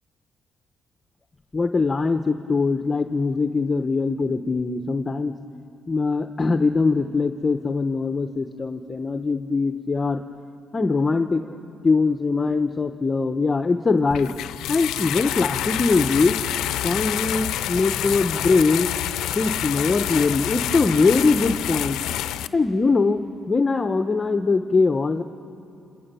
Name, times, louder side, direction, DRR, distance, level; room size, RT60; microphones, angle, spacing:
voice 1, 1.5-5.3 5.9-10.2 10.7-11.6 11.8-14.3 14.7-16.4 16.8-18.9 19.3-22.0 22.5-23.2 23.5-25.2, left 4 dB, 30° left, 8 dB, 1.0 m, -22 dB
sound 1, 14.1-22.5, left 12 dB, 85° left, 0.6 m, -27 dB
29.5 x 27.0 x 6.9 m, 2.7 s
cardioid pair, 90°, 0 cm